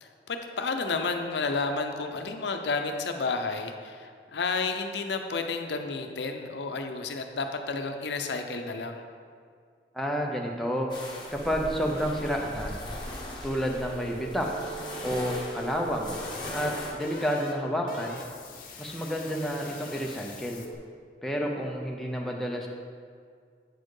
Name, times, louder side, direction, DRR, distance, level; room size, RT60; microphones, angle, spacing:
voice 1, 0.0-9.0, left 4 dB, 85° left, 5 dB, 0.6 m, -31 dB
voice 2, 9.9-10.9 11.3-12.8 13.4-14.5 15.0-16.1 16.5-16.7 17.0-18.2 18.8-20.6 21.2-22.7, equal, ahead, -1 dB, 0.6 m, -30 dB
sound 1, 10.9-16.9, left 1 dB, 25° left, 1.1 m, -39 dB
sound 2, 13.7-20.7, right 1 dB, 50° left, 0.8 m, -42 dB
8.2 x 4.4 x 4.8 m, 2.1 s
head